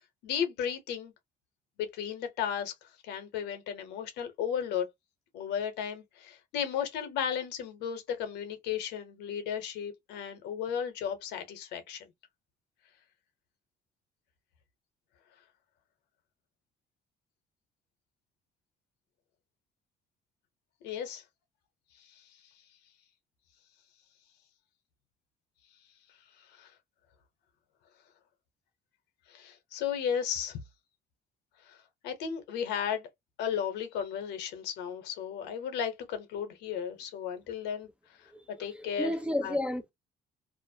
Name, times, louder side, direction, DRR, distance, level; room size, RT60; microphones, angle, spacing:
voice 1, 0.2-1.1 1.8-2.7 3.0-4.9 5.3-12.1 20.8-21.2 22.0-22.3 26.4-26.7 29.3-30.6 31.7-31.8 32.0-33.1 33.4-37.9 38.2-39.1 39.4-39.6, left 8 dB, 85° left, 0.8 m, -34 dB
voice 2, 38.7-39.9, left 1 dB, 5° right, 0.3 m, -32 dB
2.5 x 2.0 x 2.6 m
cardioid pair, 110°, 17 cm